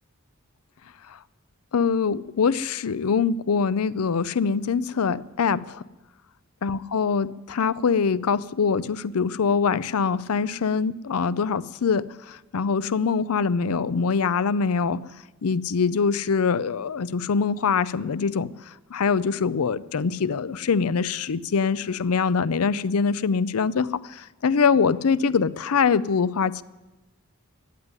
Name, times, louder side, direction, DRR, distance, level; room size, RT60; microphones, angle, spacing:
voice 1, 1.7-5.8 6.6-15.0 15.4-26.6, left 5 dB, 80° left, 18 dB, 0.5 m, -24 dB
14.5 x 9.6 x 9.6 m, 1.1 s
head